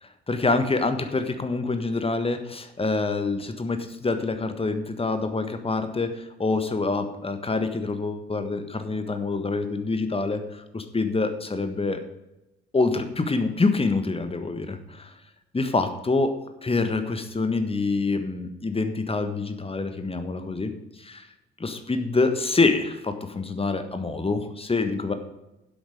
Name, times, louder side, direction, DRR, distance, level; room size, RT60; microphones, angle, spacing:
voice 1, 0.0-12.0 12.7-15.1 15.5-21.3 21.6-25.1, left 3 dB, 20° left, 9 dB, 1.4 m, -26 dB
11.5 x 8.0 x 5.0 m, 0.95 s
figure-of-eight pair, 40°, 30 cm